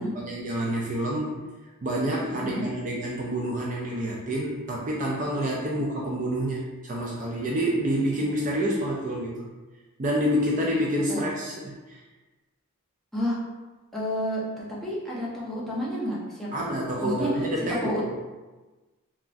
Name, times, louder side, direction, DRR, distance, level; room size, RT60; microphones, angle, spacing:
voice 1, 0.0-1.5 1.8-9.5 10.0-12.0 16.5-17.9, equal, 35° right, -3 dB, 0.4 m, -28 dB
voice 2, 2.3-2.7 11.1-11.2 13.1-13.4 13.9-14.4 14.8-16.6 17.0-17.3 17.8-18.0, equal, ahead, -7 dB, 0.6 m, -30 dB
3.0 x 2.3 x 2.4 m, 1.2 s
head